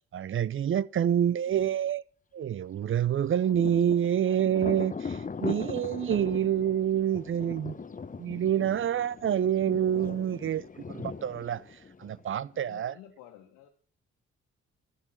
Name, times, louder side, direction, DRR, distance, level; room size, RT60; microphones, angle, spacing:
voice 1, 0.1-2.0 2.3-7.7 8.2-11.6 12.0-12.9, right 9 dB, 35° right, 0.7 m, -27 dB
Thunder, 3.0-12.5, left 5 dB, 25° left, 1.0 m, -40 dB
voice 2, 12.5-13.7, left 11 dB, 70° left, 1.8 m, -51 dB
15.5 x 6.5 x 7.9 m
figure-of-eight pair, 40°, 34 cm